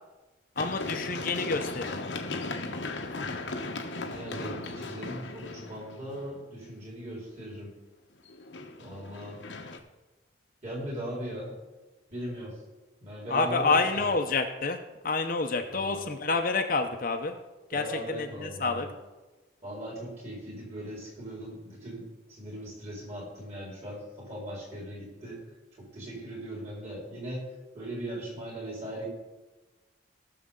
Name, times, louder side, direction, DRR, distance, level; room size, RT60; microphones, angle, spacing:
Run, 0.6-6.4 8.3-9.8, left 3 dB, 80° left, 1.1 m, -37 dB
voice 1, 0.6-2.1 13.3-14.8 15.0-17.4 17.7-18.9, left 3 dB, 50° left, 5 dB, 0.8 m, -28 dB
voice 2, 4.0-7.7 8.8-9.4 10.6-11.5 12.1-12.6 13.0-14.2 15.7-16.1 17.7-18.9 19.6-22.0 22.3-25.4 25.8-27.5 27.7-29.1, equal, 40° right, -4 dB, 4.6 m, -39 dB
19.0 x 6.8 x 3.8 m, 1.1 s
head